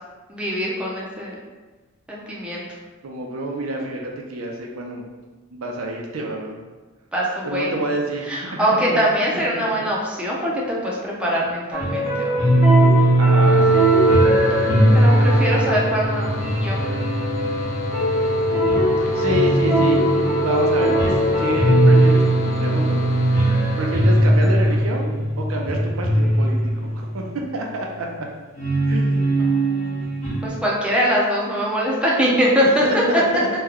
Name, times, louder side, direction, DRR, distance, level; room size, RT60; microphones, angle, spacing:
voice 1, 0.3-1.3 2.1-2.6 7.1-7.7 8.3-12.4 14.9-16.3 16.6-16.8 29.4-30.1 30.4-33.0, equal, 5° right, -5 dB, 0.5 m, -23 dB
voice 2, 3.0-5.0 5.5-6.6 7.4-8.5 8.8-9.0 13.2-13.9 19.1-23.4 23.8-28.3 28.8-29.4 32.8-33.5, right 1 dB, 90° right, 0 dB, 0.5 m, -28 dB
sound 1, 11.7-27.2 28.5-30.5, right 1 dB, 30° left, 1.1 m, -18 dB
sound 2, 13.4-24.8, left 1 dB, 80° left, 0.7 m, -30 dB
3.1 x 2.2 x 3.5 m, 1.3 s
head